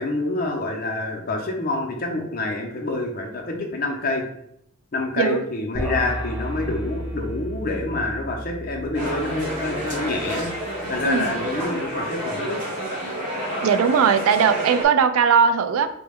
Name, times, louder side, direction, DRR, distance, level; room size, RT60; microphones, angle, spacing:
voice 1, 0.0-4.2 4.9-10.5 10.9-12.6, left 2 dB, 40° left, 1 dB, 0.6 m, -27 dB
sound 1, 5.7-11.3, equal, 15° right, 1.2 m, -33 dB
sound 2, 8.9-14.8, equal, 40° right, 1.2 m, -29 dB
voice 2, 13.6-15.9, right 6 dB, 75° right, 10 dB, 0.3 m, -19 dB
4.0 x 2.2 x 3.4 m, 0.74 s
head